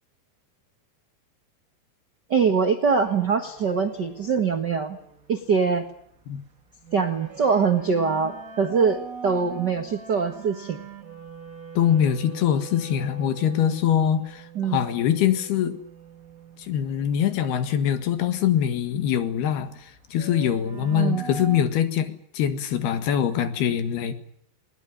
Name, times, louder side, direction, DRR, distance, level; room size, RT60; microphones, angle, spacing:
voice 1, 2.3-5.0 5.3-5.9 6.9-10.8 14.5-14.8 20.9-21.2, right 5 dB, 75° right, 0.9 m, -23 dB
sound 1, 2.9-21.7, right 6 dB, 35° right, 1.5 m, -43 dB
voice 2, 11.8-15.8 16.6-24.1, left 9 dB, 75° left, 3.8 m, -23 dB
21.0 x 20.0 x 10.0 m
omnidirectional pair, 4.6 m